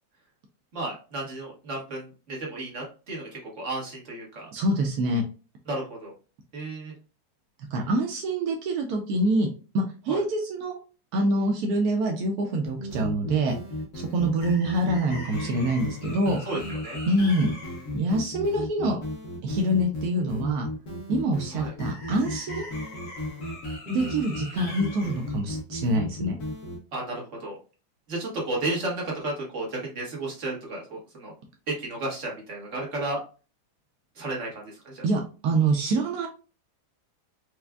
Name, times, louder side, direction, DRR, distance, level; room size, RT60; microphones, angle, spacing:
voice 1, 0.7-4.5 5.7-6.1 6.5-6.9 10.1-10.2 15.2-15.7 16.4-17.0 21.5-21.7 24.5-24.8 26.9-27.6 28.1-31.3 31.7-33.2 34.1-35.0, right 2 dB, 40° right, -2 dB, 1.4 m, -33 dB
voice 2, 4.5-5.2 7.7-9.5 9.7-10.8 11.1-13.5 13.9-16.4 17.1-17.6 17.9-19.0 19.4-20.7 21.1-22.7 23.9-26.4 35.0-36.3, right 1 dB, 75° right, 2 dB, 0.8 m, -25 dB
sound 1, 12.6-26.8, left 1 dB, 60° left, 1.6 m, -34 dB
4.6 x 2.4 x 2.3 m, 0.34 s
omnidirectional pair, 2.2 m